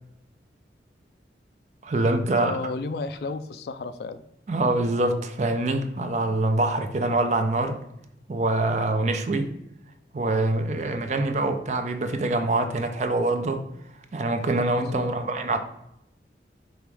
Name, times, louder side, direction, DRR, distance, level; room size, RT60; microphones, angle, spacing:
voice 1, 1.8-2.5 4.5-7.8 8.3-9.6 10.1-13.7 14.1-15.6, right 2 dB, 40° right, 0.4 m, -25 dB
voice 2, 2.4-4.2 14.7-15.1, left 3 dB, 65° left, 0.3 m, -33 dB
4.8 x 2.9 x 3.3 m
head